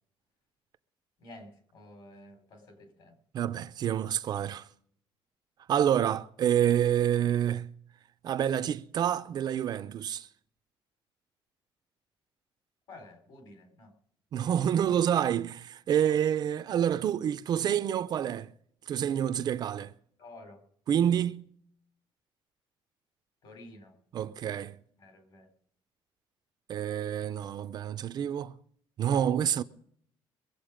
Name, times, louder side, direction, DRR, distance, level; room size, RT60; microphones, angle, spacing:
voice 1, 1.2-3.2 12.9-13.9 16.0-16.2 20.2-20.6 23.4-24.3 25.0-25.5, left 2 dB, 55° left, 4.1 m, -51 dB
voice 2, 3.3-4.7 5.7-7.7 8.2-10.3 14.3-18.5 18.9-19.9 20.9-21.5 24.1-24.8 26.7-28.5 29.0-29.6, right 9 dB, 45° right, 0.5 m, -28 dB
24.0 x 8.1 x 5.0 m
cardioid pair, 175°, 10 cm